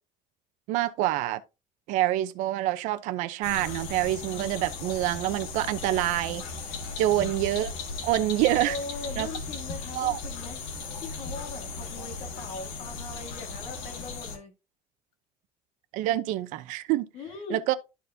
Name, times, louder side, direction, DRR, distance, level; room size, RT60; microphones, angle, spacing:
voice 1, 0.7-1.4 1.9-6.4 7.0-7.7 8.0-8.8 9.2-9.3 9.9-10.2 15.9-17.1 17.5-17.7, right 14 dB, 60° right, 0.7 m, -26 dB
sound 1, 3.4-14.4, left 4 dB, 80° left, 2.0 m, -37 dB
voice 2, 8.7-10.6 11.0-14.5 17.1-17.6, left 3 dB, 50° left, 1.8 m, -40 dB
12.5 x 4.6 x 2.7 m
cardioid pair, 175°, 14 cm